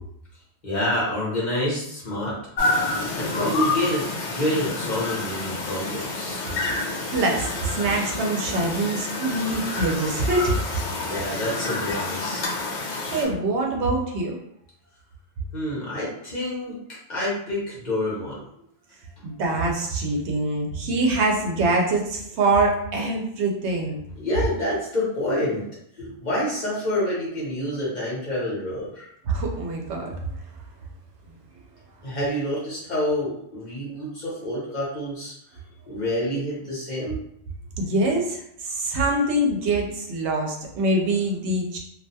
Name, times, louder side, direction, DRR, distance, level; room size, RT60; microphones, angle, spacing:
voice 1, 0.6-2.3 3.2-6.4 11.0-12.4 15.5-16.8 17.1-18.4 24.2-25.7 26.0-29.1 32.0-35.3 35.8-37.2, left 1 dB, 45° left, -7 dB, 1.0 m, -27 dB
sound 1, 2.6-13.2, left 3 dB, 80° left, 0.9 m, -29 dB
voice 2, 7.1-10.6 13.1-14.4 19.2-24.0 29.3-30.3 37.8-41.8, right 2 dB, 85° right, 1 dB, 0.9 m, -24 dB
2.5 x 2.2 x 2.7 m, 0.73 s
omnidirectional pair, 1.1 m